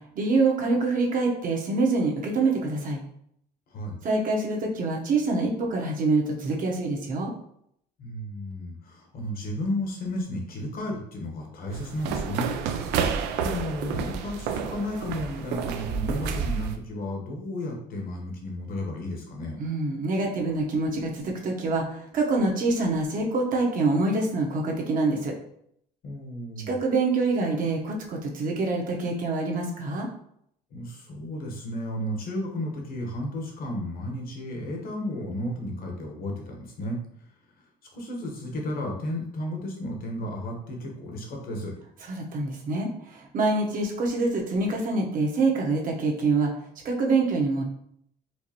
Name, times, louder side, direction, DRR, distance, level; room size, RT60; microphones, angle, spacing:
voice 1, 0.1-3.0 4.0-7.3 19.6-25.3 26.7-30.1 42.1-46.5 46.8-47.6, right 3 dB, 55° right, 0 dB, 1.0 m, -25 dB
voice 2, 8.0-12.6 13.4-19.6 26.0-26.7 30.7-37.0 37.9-41.7, left 1 dB, 60° left, 1 dB, 1.1 m, -33 dB
sound 1, 11.7-16.8, right 6 dB, 90° right, 0.4 m, -30 dB
4.5 x 2.5 x 2.9 m, 0.71 s
cardioid pair, 110°, 17 cm